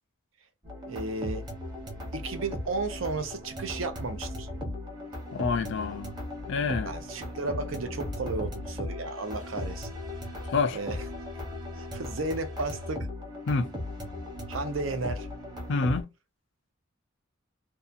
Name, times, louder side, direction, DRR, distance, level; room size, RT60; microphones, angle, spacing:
sound 1, 0.6-16.0, left 1 dB, 20° right, 1.0 m, -37 dB
voice 1, 0.9-1.4 2.1-4.5 6.9-9.9 10.7-11.0 11.7-13.1 14.5-15.3, right 3 dB, 75° right, 0.7 m, -33 dB
voice 2, 5.3-6.1 6.5-6.9 10.5-10.8 13.5-13.7 15.7-16.1, left 4 dB, 65° left, 0.4 m, -27 dB
2.7 x 2.3 x 2.4 m
head